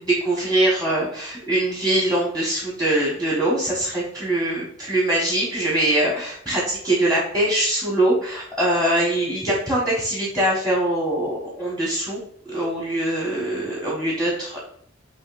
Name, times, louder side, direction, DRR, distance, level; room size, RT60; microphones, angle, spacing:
voice 1, 0.0-12.2 12.5-14.6, right 1 dB, 5° left, -6 dB, 1.3 m, -22 dB
6.7 x 3.1 x 2.5 m, 0.64 s
head